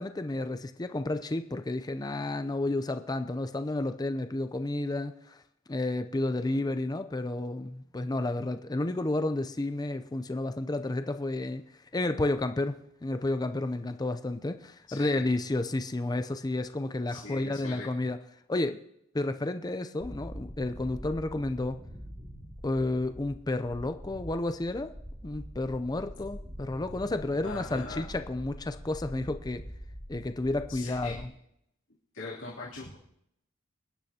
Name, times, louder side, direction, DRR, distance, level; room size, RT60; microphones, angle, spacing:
voice 1, 0.0-5.4 5.7-11.6 11.9-18.2 18.5-18.8 19.1-21.8 22.6-24.9 25.2-29.6 30.1-31.3, left 2 dB, 20° left, 9 dB, 0.5 m, -31 dB
voice 2, 14.9-15.3 17.1-17.9 27.4-28.1 30.7-31.2 32.1-33.0, left 3 dB, 70° left, -9 dB, 3.0 m, -41 dB
sound 1, 20.0-31.2, equal, 30° right, 3.5 m, -44 dB
28.0 x 10.0 x 2.8 m, 0.78 s
head